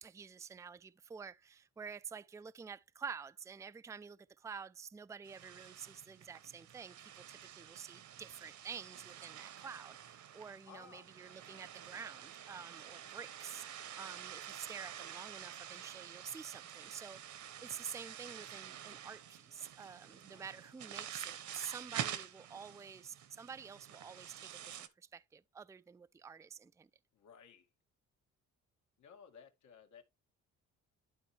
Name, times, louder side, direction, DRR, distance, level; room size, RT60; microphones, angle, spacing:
voice 1, 0.0-26.9, right 6 dB, 10° right, 0.4 m, -49 dB
sound 1, 5.2-24.9, right 10 dB, 75° right, 1.2 m, -48 dB
voice 2, 10.7-11.1 20.3-20.5 27.1-27.7 29.0-30.0, left 7 dB, 75° left, 2.0 m, -57 dB
11.5 x 4.3 x 3.1 m
cardioid pair, 90°, 30 cm